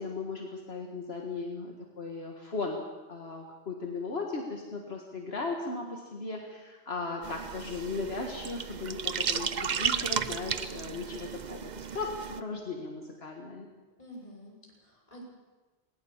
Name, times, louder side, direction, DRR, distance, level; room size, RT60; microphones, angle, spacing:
voice 1, 0.0-2.8 3.1-13.7, left 3 dB, 75° left, 1 dB, 2.1 m, -37 dB
sound 1, 7.2-12.4, right 7 dB, 50° right, 0.8 m, -34 dB
voice 2, 14.0-15.3, equal, 35° left, -3 dB, 6.0 m, -48 dB
19.0 x 18.5 x 7.2 m, 1.2 s
omnidirectional pair, 1.1 m